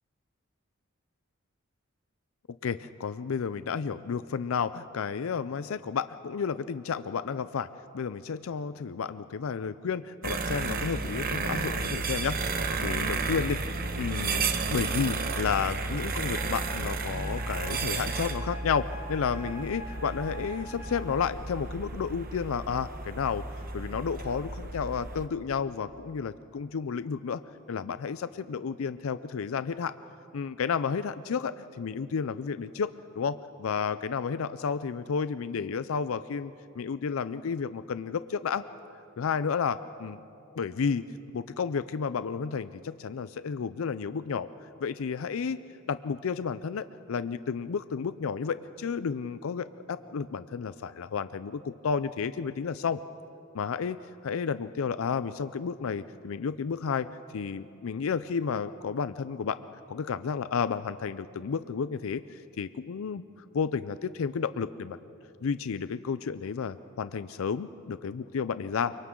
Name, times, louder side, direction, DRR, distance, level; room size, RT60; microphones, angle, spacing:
voice 1, 2.6-7.7 7.9-12.4 12.8-13.6 13.9-23.4 23.7-27.4 27.7-30.0 30.3-38.6 39.2-40.2 40.6-41.0 41.3-44.5 44.8-45.6 45.9-53.0 53.5-54.0 54.2-57.1 57.3-59.6 59.9-63.2 63.5-65.0 65.4-69.0, left 6 dB, 85° left, 13 dB, 0.4 m, -31 dB
sound 1, 10.2-25.3, right 3 dB, 45° right, 1.0 m, -33 dB
Wind instrument woodwind instrument, 16.3-21.1, right 1 dB, 65° left, 2.5 m, -45 dB
29.0 x 24.5 x 3.8 m, 2.7 s
head